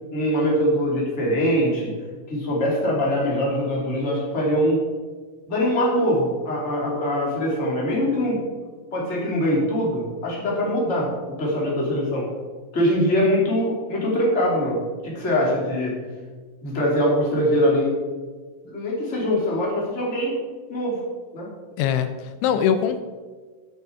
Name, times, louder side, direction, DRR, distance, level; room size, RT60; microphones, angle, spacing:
voice 1, 0.1-1.9 2.3-4.8 5.5-8.4 8.9-11.1 11.4-12.3 12.7-15.9 16.6-17.9 18.6-20.3 20.7-21.0 21.3-21.5, equal, 20° left, -4 dB, 2.5 m, -22 dB
voice 2, 21.8-23.0, left 8 dB, 85° left, 9 dB, 3.0 m, -22 dB
14.0 x 8.0 x 4.7 m, 1.5 s
omnidirectional pair, 5.4 m